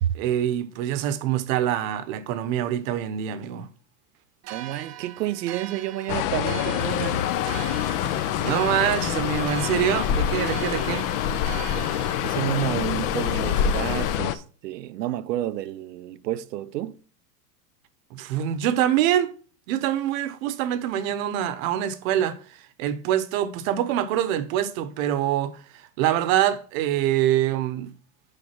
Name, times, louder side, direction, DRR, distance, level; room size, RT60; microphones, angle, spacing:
voice 1, 0.1-3.7 8.1-11.1 18.1-19.3 19.7-27.9, right 11 dB, 55° right, 1.0 m, -25 dB
sound 1, 4.4-12.6, right 13 dB, 35° right, 0.7 m, -41 dB
voice 2, 4.5-7.3 12.2-17.0, right 13 dB, 85° right, 0.7 m, -30 dB
sound 2, 6.1-14.4, left 9 dB, 40° left, 0.6 m, -26 dB
sound 3, 6.8-14.2, left 9 dB, 65° left, 1.3 m, -38 dB
6.6 x 5.0 x 5.9 m
supercardioid pair, 125°, 48 cm